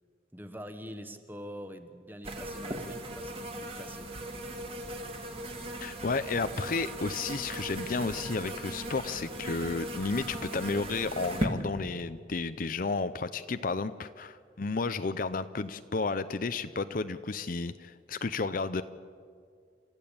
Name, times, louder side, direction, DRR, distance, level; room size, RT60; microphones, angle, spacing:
voice 1, 0.3-4.1, equal, 10° right, 8 dB, 1.3 m, -44 dB
sound 1, 2.2-11.5, right 1 dB, 30° right, 2.2 m, -38 dB
voice 2, 5.8-18.8, left 4 dB, 50° left, 11 dB, 0.6 m, -32 dB
29.5 x 14.0 x 8.7 m, 2.1 s
head